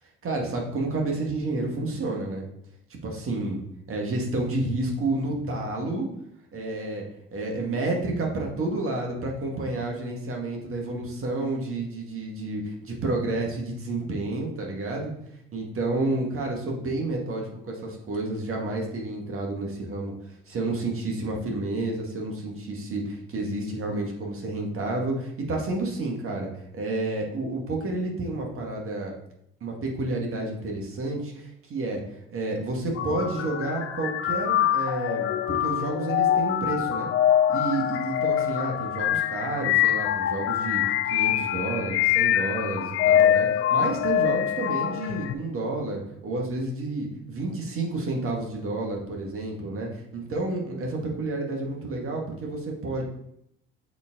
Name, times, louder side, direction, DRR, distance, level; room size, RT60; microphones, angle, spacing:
voice 1, 0.2-2.4 3.0-3.6 3.9-6.1 6.5-7.1 7.3-15.1 15.5-20.1 20.5-29.1 29.6-32.0 32.3-37.1 37.5-53.0, right 2 dB, 45° right, 0 dB, 1.9 m, -30 dB
sound 1, 32.9-45.3, left 11 dB, 50° left, 0.5 m, -24 dB
7.0 x 4.2 x 3.8 m, 0.74 s
hypercardioid pair, 70°, 30 cm